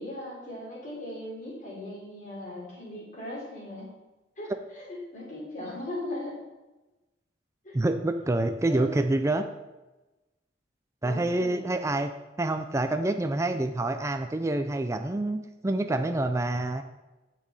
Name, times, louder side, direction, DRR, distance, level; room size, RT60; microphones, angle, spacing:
voice 1, 0.0-3.8 4.4-6.4 7.6-7.8 8.6-8.9 11.0-11.6, left 1 dB, 45° left, -4 dB, 3.5 m, -38 dB
voice 2, 7.7-9.5 11.0-12.1 12.4-16.8, right 2 dB, 15° right, 7 dB, 0.4 m, -27 dB
8.9 x 7.5 x 4.1 m, 1.1 s
head